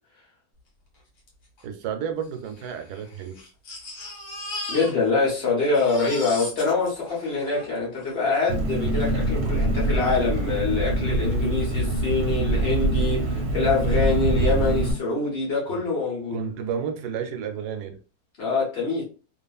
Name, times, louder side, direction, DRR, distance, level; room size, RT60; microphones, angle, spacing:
Crying sobbing, 1.3-1.4 1.6-1.7 2.4-5.3 5.6-8.2 9.0-9.1 9.5-9.6, left 2 dB, 70° left, 1.6 m, -37 dB
voice 1, 1.6-3.4 15.7-15.9 16.3-18.0, right 7 dB, 90° right, 1.1 m, -31 dB
voice 2, 4.7-16.4 18.4-19.0, left 3 dB, 45° left, 1.2 m, -25 dB
Engine, 8.5-14.9, right 1 dB, 60° right, 1.0 m, -24 dB
2.8 x 2.4 x 2.3 m
omnidirectional pair, 1.6 m